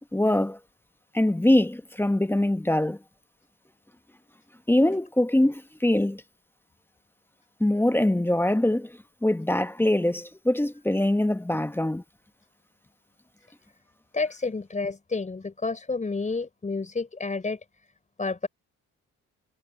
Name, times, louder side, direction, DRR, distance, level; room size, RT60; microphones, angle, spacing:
voice 1, 0.1-0.6 1.1-3.0 4.7-6.2 7.6-8.9 9.2-12.0, left 1 dB, 5° left, 1.1 m, -23 dB
voice 2, 14.1-17.6 18.2-18.5, left 3 dB, 25° left, 4.6 m, -30 dB
cardioid pair, 90°, 30 cm